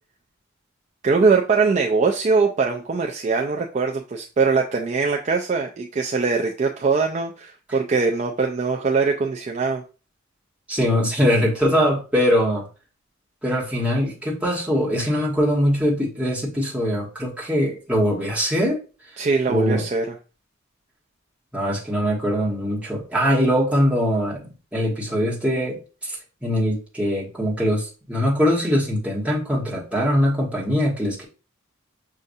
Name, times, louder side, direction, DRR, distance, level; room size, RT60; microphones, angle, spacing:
voice 1, 1.0-9.8 19.2-20.2, right 4 dB, 35° right, 1 dB, 0.4 m, -22 dB
voice 2, 10.7-12.6 13.4-18.8 19.5-19.8 21.5-26.1 26.4-31.2, equal, 5° right, -5 dB, 1.3 m, -22 dB
6.5 x 2.5 x 2.6 m, 0.34 s
head